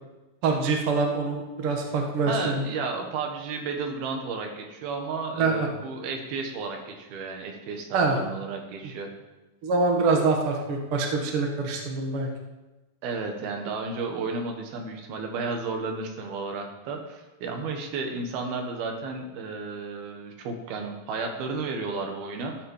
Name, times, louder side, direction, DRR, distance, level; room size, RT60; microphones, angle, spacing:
voice 1, 0.4-2.6 5.3-5.7 7.9-8.2 9.6-12.3, right 3 dB, 45° right, 1 dB, 2.2 m, -25 dB
voice 2, 2.3-9.1 13.0-22.6, right 4 dB, 80° right, 3 dB, 3.4 m, -33 dB
13.5 x 7.8 x 7.3 m, 1.1 s
omnidirectional pair, 4.3 m